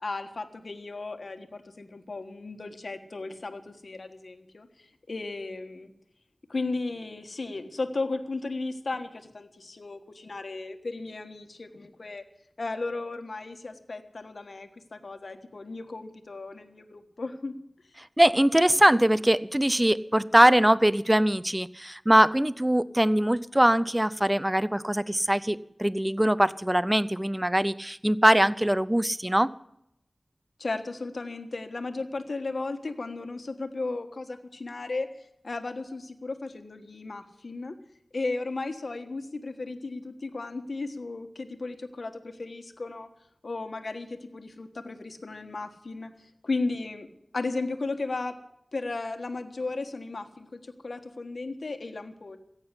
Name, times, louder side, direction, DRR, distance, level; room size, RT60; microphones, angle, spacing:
voice 1, 0.0-5.9 6.5-12.2 12.6-17.5 18.7-18.8 30.6-35.1 35.4-37.8 38.1-43.1 43.4-47.1 47.3-48.3 48.7-52.4, left 3 dB, 75° left, 7 dB, 1.4 m, -35 dB
voice 2, 18.2-29.5, right 1 dB, 15° right, 17 dB, 0.5 m, -22 dB
15.0 x 8.9 x 9.6 m, 0.76 s
wide cardioid pair, 60°, 0 cm